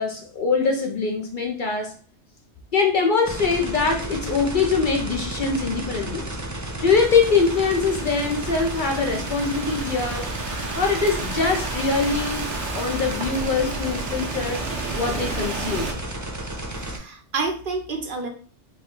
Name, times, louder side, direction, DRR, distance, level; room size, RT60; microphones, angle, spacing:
voice 1, 0.0-1.9 2.7-6.3 6.8-10.3 10.8-14.7 14.9-15.9, left 4 dB, 55° left, 2 dB, 0.6 m, -23 dB
sound 1, 3.2-17.0, right 1 dB, 25° right, 0.4 m, -32 dB
Thunderstorm / Rain, 6.9-15.9, right 3 dB, 80° right, 1.1 m, -32 dB
voice 2, 16.7-18.3, right 3 dB, 55° right, 3 dB, 0.7 m, -29 dB
4.4 x 2.1 x 3.6 m, 0.42 s
omnidirectional pair, 1.2 m